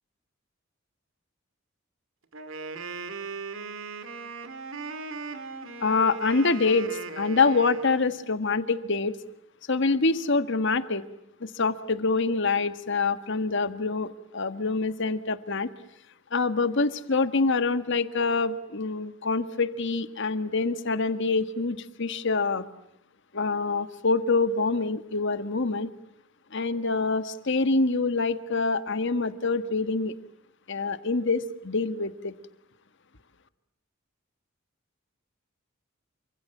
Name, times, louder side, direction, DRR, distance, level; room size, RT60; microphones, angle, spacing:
Wind instrument woodwind instrument, 2.3-8.2, right 4 dB, 65° right, 2.3 m, -38 dB
voice 1, 5.8-6.9 7.1-9.2 9.7-11.1 11.4-15.7 16.3-22.7 23.3-25.9 26.5-30.1 30.7-32.3, left 3 dB, 60° left, 11 dB, 1.6 m, -26 dB
28.0 x 25.5 x 7.3 m, 0.77 s
head